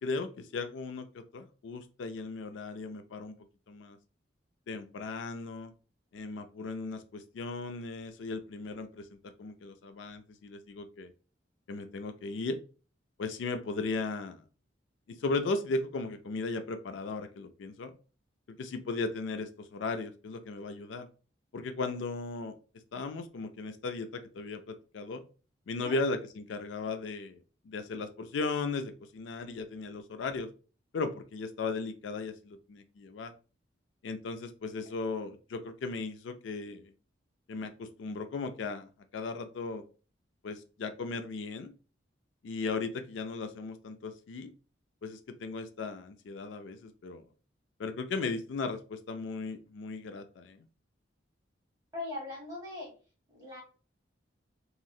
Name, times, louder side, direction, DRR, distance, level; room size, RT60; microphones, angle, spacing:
voice 1, 0.0-3.3 3.7-4.0 4.7-5.7 6.1-11.1 11.7-12.6 13.2-14.4 15.1-17.9 18.5-21.1 21.5-22.5 22.9-25.2 25.7-30.5 30.9-33.3 34.0-36.9 37.5-39.8 40.4-41.7 42.4-44.5 45.0-47.2 47.8-50.6, left 3 dB, 75° left, 8 dB, 0.4 m, -36 dB
voice 2, 51.9-52.9 53.3-53.6, left 2 dB, 20° right, -3 dB, 1.3 m, -40 dB
3.0 x 2.7 x 2.3 m, 0.36 s
head